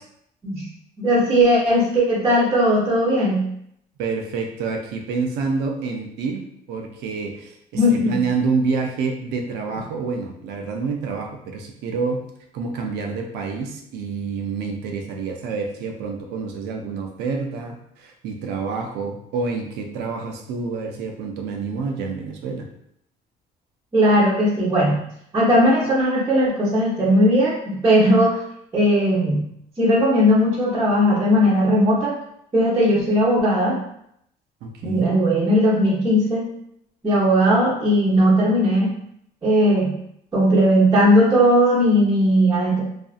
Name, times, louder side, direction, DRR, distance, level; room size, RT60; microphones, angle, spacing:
voice 1, 1.0-3.5 7.7-8.2 23.9-25.0 25.3-28.4 28.7-29.4 29.8-32.1 32.5-33.8 34.8-36.5 37.0-38.9 39.4-39.9 40.3-42.8, equal, 20° right, -11 dB, 0.9 m, -18 dB
voice 2, 4.0-6.4 6.7-12.2 12.5-22.7 34.6-35.1, right 4 dB, 80° right, 3 dB, 0.5 m, -28 dB
2.6 x 2.4 x 2.4 m, 0.73 s
cardioid pair, 110°, 17 cm